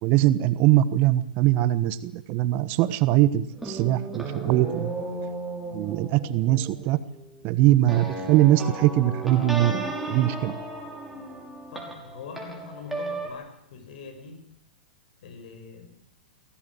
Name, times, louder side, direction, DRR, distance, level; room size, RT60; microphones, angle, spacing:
voice 1, 0.0-4.9 5.7-7.0 7.4-10.5, right 14 dB, 40° right, 16 dB, 1.2 m, -22 dB
sound 1, 3.6-13.3, right 2 dB, 5° right, 6.1 m, -35 dB
voice 2, 11.7-14.4 15.2-15.9, left 5 dB, 65° left, 8 dB, 6.2 m, -43 dB
23.0 x 17.5 x 7.8 m, 0.77 s
hypercardioid pair, 115°, 5 cm